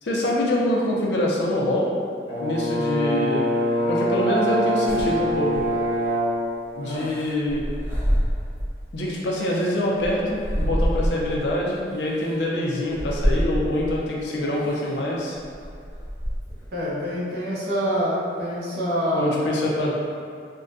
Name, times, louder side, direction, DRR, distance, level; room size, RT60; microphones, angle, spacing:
voice 1, 0.0-1.9 2.4-3.4 3.9-5.5 6.7-7.6 8.9-15.4 19.2-19.9, left 1 dB, 75° left, -4 dB, 0.5 m, -25 dB
Brass instrument, 2.3-6.4, equal, 35° left, 0.8 m, -24 dB
sound 1, 4.9-6.1 6.9-8.8 9.3-11.5 12.2-12.3 12.9-14.0 14.6-14.9 15.3-16.7, equal, 15° right, 0.7 m, -27 dB
voice 2, 16.7-19.3, equal, 65° right, -7 dB, 0.8 m, -26 dB
3.6 x 2.2 x 2.5 m, 2.3 s
head